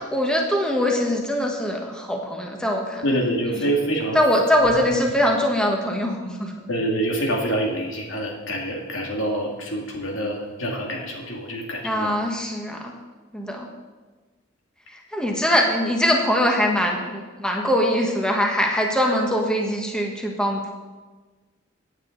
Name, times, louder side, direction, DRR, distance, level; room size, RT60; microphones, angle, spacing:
voice 1, 0.0-3.0 3.5-3.6 4.1-6.5 11.8-12.9 13.3-13.7 14.9-20.7, equal, 5° left, 0 dB, 1.3 m, -22 dB
voice 2, 3.0-4.2 6.7-12.1, right 1 dB, 75° left, 0 dB, 2.5 m, -26 dB
16.0 x 9.1 x 4.0 m, 1.3 s
head